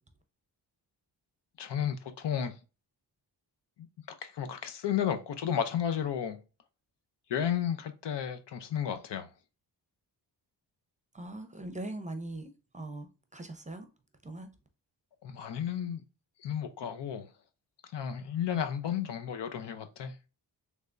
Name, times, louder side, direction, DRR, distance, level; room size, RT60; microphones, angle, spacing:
voice 1, 1.6-2.6 3.8-6.4 7.3-9.3 15.2-16.0 16.4-17.3 17.9-20.1, left 9 dB, 70° left, 0.7 m, -33 dB
voice 2, 11.1-13.9 14.2-14.5, right 2 dB, 15° right, 0.6 m, -41 dB
3.4 x 3.3 x 2.5 m
cardioid pair, 80°, 43 cm